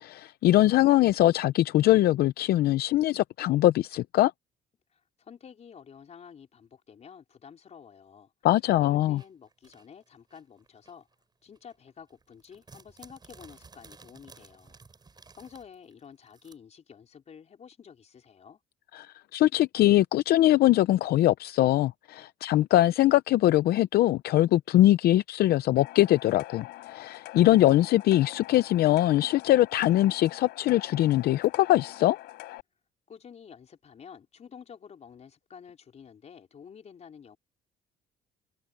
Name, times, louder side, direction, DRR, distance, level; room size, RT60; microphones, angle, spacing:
voice 1, 0.0-4.3 8.4-9.2 18.9-32.2, left 14 dB, 70° left, 0.6 m, -22 dB
voice 2, 4.9-8.3 8.8-11.1 11.4-14.8 15.3-18.6 33.1-37.4, left 7 dB, 40° left, 4.5 m, -50 dB
sound 1, 9.2-11.2 11.6-16.6, right 4 dB, 25° right, 6.6 m, -54 dB
sound 2, 25.8-32.6, left 18 dB, 90° left, 4.5 m, -44 dB
cardioid pair, 110°, 17 cm